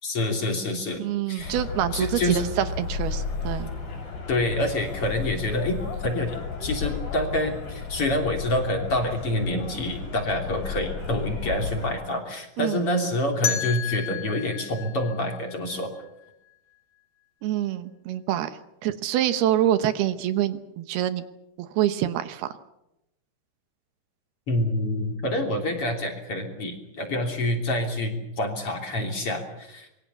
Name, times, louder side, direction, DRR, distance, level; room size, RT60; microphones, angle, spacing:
voice 1, 0.0-1.5 1.9-2.5 4.3-6.4 6.6-15.9 24.5-29.9, left 1 dB, 35° left, 3 dB, 3.7 m, -27 dB
voice 2, 1.0-3.7 12.6-12.8 17.4-21.2 21.6-22.5, right 12 dB, 75° right, 11 dB, 2.9 m, -26 dB
sound 1, 1.4-11.9, left 5 dB, 70° left, 7.3 m, -33 dB
sound 2, 13.4-16.3, left 10 dB, 50° left, 3.3 m, -32 dB
26.5 x 23.0 x 7.0 m, 0.88 s
omnidirectional pair, 4.7 m